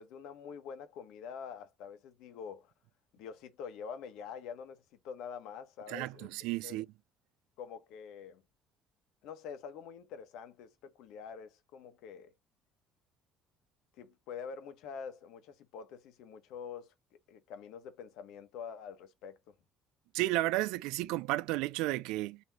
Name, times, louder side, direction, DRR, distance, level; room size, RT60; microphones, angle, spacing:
voice 1, 0.0-2.7 3.1-6.3 6.6-6.8 7.6-8.4 9.2-12.3 14.0-16.9 17.3-19.5, left 6 dB, 75° left, 1.2 m, -46 dB
voice 2, 5.9-6.9 20.1-22.4, right 18 dB, 90° right, 0.3 m, -33 dB
4.2 x 3.0 x 4.2 m
cardioid pair, 155°, 0 cm